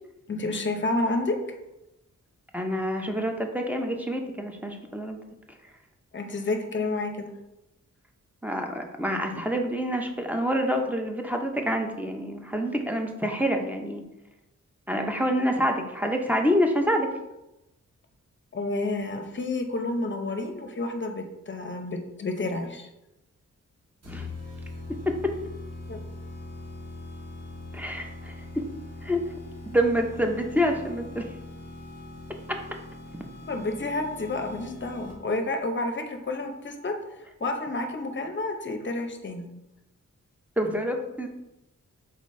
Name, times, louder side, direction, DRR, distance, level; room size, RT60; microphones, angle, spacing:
voice 1, 0.3-1.4 6.1-7.3 18.5-22.9 25.9-26.0 33.5-37.0 37.4-39.5, left 2 dB, 35° left, 4 dB, 0.6 m, -30 dB
voice 2, 2.5-5.2 8.4-14.0 14.9-17.1 24.1-24.3 25.1-25.2 27.7-28.7 29.0-29.2 29.7-31.3 32.5-32.6 40.6-41.3, equal, 5° right, 3 dB, 0.6 m, -27 dB
sound 1, 24.0-35.4, left 2 dB, 50° right, 1.4 m, -41 dB
3.9 x 3.9 x 3.2 m, 0.92 s
cardioid pair, 85°, 31 cm